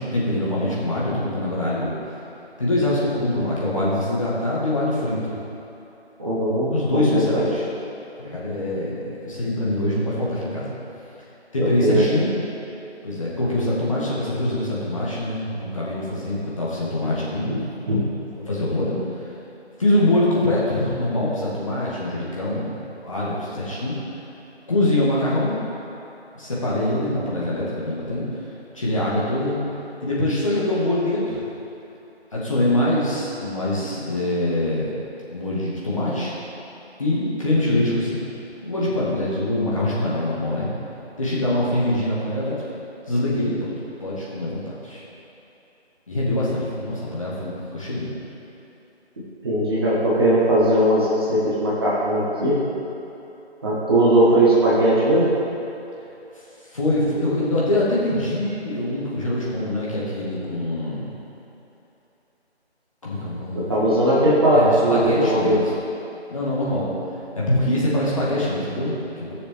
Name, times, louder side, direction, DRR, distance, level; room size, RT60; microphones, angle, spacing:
voice 1, 0.0-1.9 2.6-5.4 6.7-7.6 8.2-10.7 11.5-12.3 13.0-17.5 18.5-19.0 19.8-24.0 24.7-25.6 26.4-28.2 28.7-29.6 30.0-31.4 32.3-34.9 35.3-36.3 37.0-38.3 38.6-40.7 41.2-42.6 43.1-43.7 44.0-45.0 46.1-48.1 56.7-61.1 63.0-63.8 64.5-65.7 66.3-66.9 67.4-69.3, left 1 dB, 30° left, -7 dB, 1.7 m, -24 dB
voice 2, 6.2-7.5 11.8-12.0 17.4-17.6 17.9-18.0 49.4-52.6 53.6-55.3 63.5-65.6, right 1 dB, 20° right, -9 dB, 1.5 m, -19 dB
15.5 x 6.7 x 3.6 m, 3.0 s
figure-of-eight pair, 160°, 33 cm